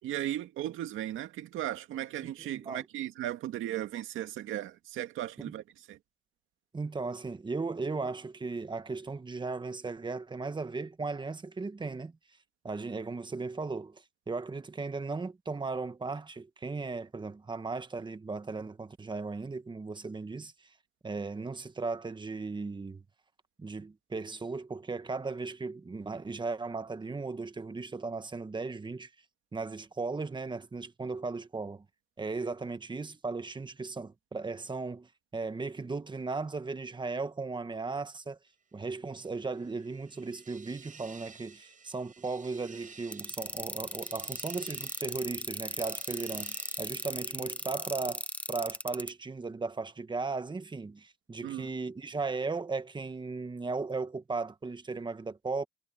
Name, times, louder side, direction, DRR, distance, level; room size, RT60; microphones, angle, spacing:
voice 1, 0.0-6.0 51.4-51.7, right 12 dB, 85° right, 2.2 m, -36 dB
voice 2, 2.2-2.8 5.4-5.5 6.7-12.1 12.6-20.5 21.0-23.0 23.6-29.1 29.5-31.8 32.2-38.4 38.7-55.6, right 4 dB, 25° right, 1.4 m, -36 dB
sound 1, 39.2-48.3, right 5 dB, 40° right, 6.1 m, -54 dB
sound 2, 43.1-49.1, left 1 dB, 5° left, 0.7 m, -37 dB
cardioid pair, 90°, 20 cm